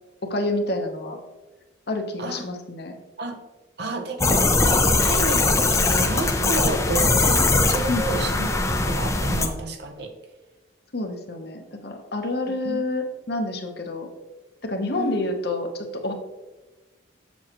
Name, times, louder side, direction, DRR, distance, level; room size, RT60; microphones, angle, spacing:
voice 1, 0.2-1.2 1.9-2.9 7.9-8.0 10.9-14.1 14.6-16.1, left 2 dB, 55° left, 4 dB, 1.0 m, -28 dB
voice 2, 3.8-10.1 12.6-12.8 14.9-15.2, right 2 dB, 55° right, 5 dB, 0.8 m, -30 dB
sound 1, 4.2-9.5, left 3 dB, 15° left, 0.5 m, -21 dB
7.6 x 7.1 x 3.0 m, 1.1 s
head